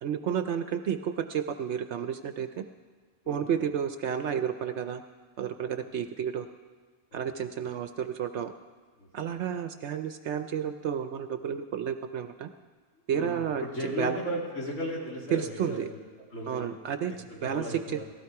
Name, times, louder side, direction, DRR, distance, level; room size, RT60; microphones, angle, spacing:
voice 1, 0.0-2.7 3.3-5.0 5.4-6.5 7.1-8.5 9.1-12.5 13.1-13.6 14.0-14.2 15.3-15.9 16.5-17.1 17.4-18.0, right 8 dB, 70° right, 9 dB, 0.9 m, -31 dB
voice 2, 13.1-16.0 16.3-16.7 17.3-18.0, equal, 70° left, -4 dB, 3.4 m, -36 dB
18.0 x 15.5 x 4.7 m, 1.4 s
omnidirectional pair, 1.3 m